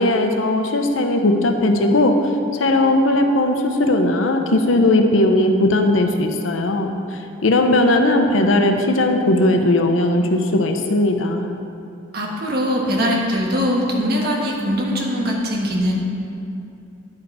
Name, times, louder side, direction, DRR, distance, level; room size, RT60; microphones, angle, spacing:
voice 1, 0.0-2.2 2.5-11.5, left 1 dB, 90° left, 5 dB, 0.7 m, -18 dB
voice 2, 12.1-16.0, equal, 55° right, -1 dB, 1.3 m, -21 dB
10.5 x 5.0 x 4.7 m, 2.6 s
head